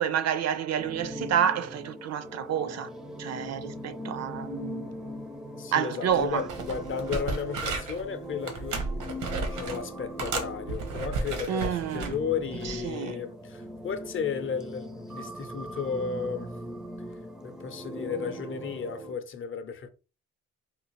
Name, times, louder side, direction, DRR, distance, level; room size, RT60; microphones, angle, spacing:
voice 1, 0.0-2.9 3.2-4.9 5.7-6.4 11.5-12.1 12.6-13.2, right 9 dB, 60° right, 0.5 m, -29 dB
sound 1, 0.8-19.1, equal, ahead, 0.4 m, -40 dB
voice 2, 5.6-16.5 17.4-19.9, left 6 dB, 40° left, 0.6 m, -34 dB
sound 2, 6.1-6.2 6.5-8.0 8.4-9.8 10.2-12.1 12.6-12.9, right 3 dB, 90° right, 1.0 m, -33 dB
3.6 x 2.4 x 2.9 m
cardioid pair, 90°, 30 cm